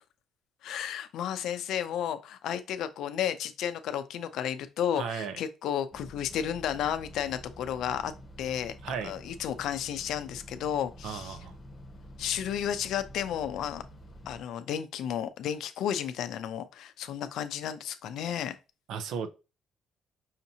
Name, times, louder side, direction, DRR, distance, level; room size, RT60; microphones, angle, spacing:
voice 1, 0.6-8.1 8.4-8.7 9.0-11.4 12.2-13.8 14.3-18.6, left 9 dB, 70° left, 0.4 m, -32 dB
voice 2, 5.0-5.4 8.8-9.1 11.0-11.5 18.9-19.3, right 6 dB, 75° right, 0.5 m, -35 dB
sound 1, 5.9-14.4, equal, 25° left, 0.8 m, -48 dB
5.6 x 2.8 x 2.7 m
cardioid pair, 160°, 0 cm